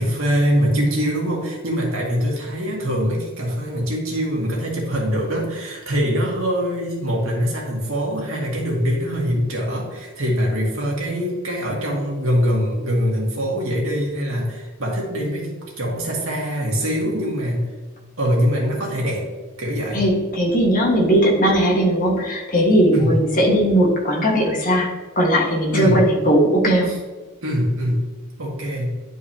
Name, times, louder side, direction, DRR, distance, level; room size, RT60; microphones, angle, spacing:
voice 1, 0.0-17.7 18.2-19.2 19.6-20.1 22.9-23.2 25.7-26.1 26.9-27.0 27.4-28.1 28.4-29.0, equal, 65° right, -3 dB, 2.0 m, -23 dB
voice 2, 19.9-24.9 25.1-26.9, equal, 40° left, -2 dB, 1.6 m, -18 dB
10.5 x 4.7 x 2.9 m, 1.3 s
head